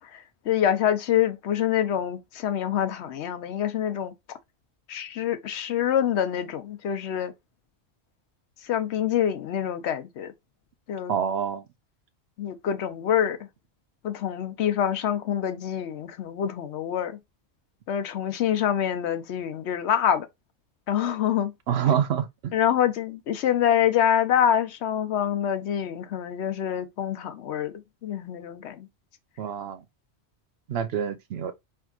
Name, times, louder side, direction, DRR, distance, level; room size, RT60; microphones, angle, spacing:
voice 1, 0.0-4.1 4.9-7.3 8.7-10.3 10.9-11.1 12.4-13.4 14.0-17.2 17.9-20.3 20.9-21.5 22.5-27.7 28.0-28.9, left 10 dB, 80° left, 0.9 m, -26 dB
voice 2, 11.1-11.7 21.7-22.5 29.4-29.8 30.7-31.5, right 8 dB, 70° right, 0.8 m, -26 dB
4.5 x 3.4 x 2.3 m
omnidirectional pair, 1.1 m